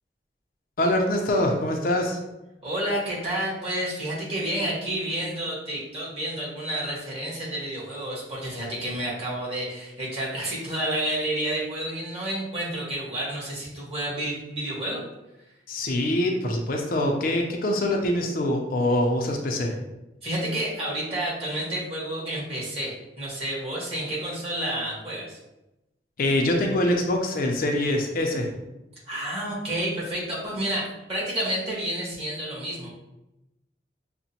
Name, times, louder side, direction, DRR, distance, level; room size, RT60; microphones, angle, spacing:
voice 1, 0.8-2.2 15.7-19.7 26.2-28.5, left 1 dB, 55° left, 2 dB, 0.5 m, -24 dB
voice 2, 2.6-15.0 20.2-25.4 29.1-32.9, right 1 dB, 35° right, -6 dB, 1.5 m, -30 dB
5.9 x 2.1 x 2.8 m, 0.96 s
head